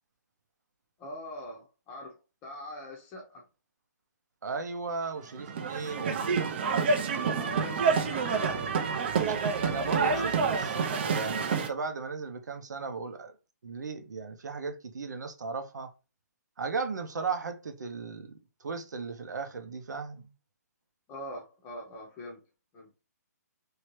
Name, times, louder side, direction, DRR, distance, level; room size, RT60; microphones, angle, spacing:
voice 1, 1.0-2.2 2.4-3.4 7.3-8.7 9.6-10.5 21.1-22.4 22.7-22.9, left 1 dB, 15° left, 0.7 m, -42 dB
voice 2, 4.4-6.5 9.6-13.3 13.6-15.9 16.6-20.3, right 4 dB, 80° right, 0.8 m, -36 dB
sound 1, 5.4-11.7, right 5 dB, 35° right, 0.5 m, -28 dB
3.2 x 2.7 x 3.0 m
hypercardioid pair, 165°, 9 cm